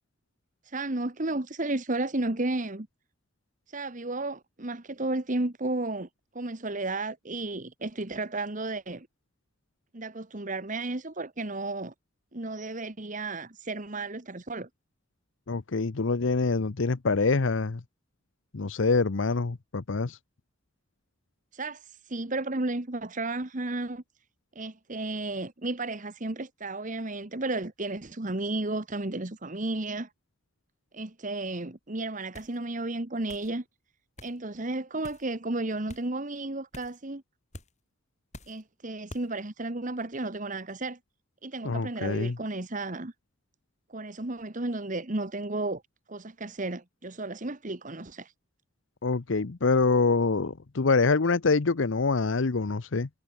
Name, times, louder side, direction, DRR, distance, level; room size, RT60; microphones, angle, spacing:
voice 1, 0.6-2.9 3.7-6.1 6.3-9.1 9.9-11.9 12.3-14.7 21.5-24.0 24.5-30.1 30.9-33.6 34.2-37.2 38.5-41.0 41.4-43.1 43.9-45.8 46.1-48.3, right 2 dB, 40° right, 1.5 m, -33 dB
voice 2, 15.5-17.8 18.5-20.2 41.6-42.4 49.0-53.1, left 4 dB, 70° left, 0.8 m, -25 dB
sound 1, 32.3-32.6 33.3-33.5 34.2-34.4 35.0-35.3 35.9-36.1 36.7-37.0 37.5-37.7 38.3-38.6 39.1-39.3, left 1 dB, 35° left, 7.4 m, -46 dB
head